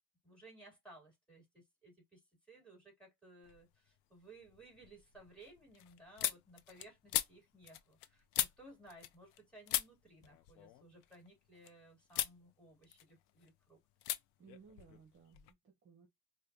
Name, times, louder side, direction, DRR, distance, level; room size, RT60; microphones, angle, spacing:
voice 1, 0.2-2.2 2.5-13.8, right 2 dB, 5° left, 2.9 m, -59 dB
sound 1, 3.4-4.0 4.4-9.4 9.7-11.7 12.1-12.4 12.8-13.5 14.0-14.2 14.5-15.5, left 14 dB, 90° left, 0.6 m, -40 dB
voice 2, 14.4-16.1, right 6 dB, 30° right, 0.9 m, -60 dB
4.9 x 2.3 x 2.7 m
cardioid pair, 125°, 39 cm